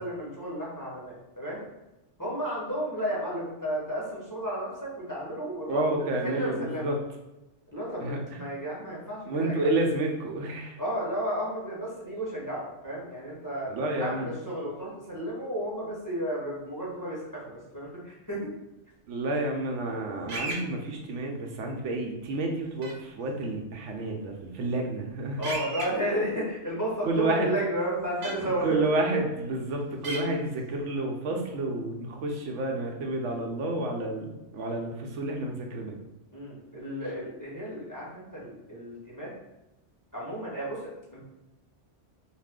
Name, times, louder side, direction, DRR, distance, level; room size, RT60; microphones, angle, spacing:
voice 1, 0.0-1.6 2.2-5.8 6.2-6.9 7.7-9.7 10.8-18.5 25.4-28.8 36.3-39.3 40.1-41.2, right 1 dB, 20° left, -6 dB, 0.7 m, -33 dB
voice 2, 5.7-7.0 8.0-8.4 9.3-10.8 13.7-14.3 19.1-25.5 27.0-27.5 28.6-36.0, right 2 dB, 85° right, 2 dB, 0.9 m, -30 dB
sound 1, 20.3-20.6 22.8-22.9 25.4-25.9 28.2-28.3 30.0-30.2, right 2 dB, 65° right, 0.8 m, -33 dB
2.4 x 2.4 x 3.5 m, 0.98 s
omnidirectional pair, 1.2 m